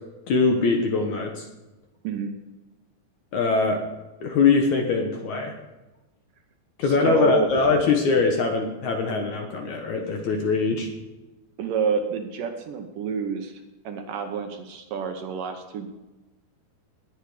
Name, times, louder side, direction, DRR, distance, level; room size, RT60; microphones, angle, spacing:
voice 1, 0.3-1.4 3.3-3.8 4.2-5.5 6.8-10.9, left 4 dB, 60° left, 3 dB, 2.2 m, -22 dB
voice 2, 2.0-2.4 6.8-7.5 11.6-15.9, right 6 dB, 70° right, 5 dB, 2.4 m, -29 dB
19.5 x 8.2 x 5.0 m, 1.1 s
omnidirectional pair, 4.5 m